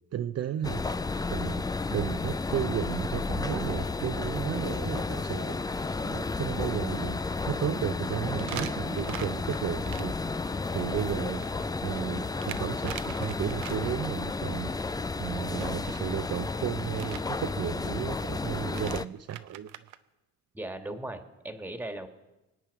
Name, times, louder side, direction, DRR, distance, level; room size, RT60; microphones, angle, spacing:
voice 1, 0.1-0.8 1.3-10.1 10.4-19.7, right 10 dB, 50° right, 8 dB, 0.6 m, -34 dB
sound 1, 0.6-19.0, left 3 dB, 10° left, 0.5 m, -32 dB
sound 2, 4.0-4.1 4.6-4.7 5.0-5.1 8.4-10.0 11.3-14.1 15.5-16.1 16.9-17.2 18.4-18.5 18.7-20.0, right 13 dB, 90° right, 0.7 m, -43 dB
voice 2, 20.5-22.1, right 1 dB, 5° right, 6 dB, 1.7 m, -38 dB
25.5 x 8.8 x 4.8 m, 1.0 s
cardioid pair, 80°, 31 cm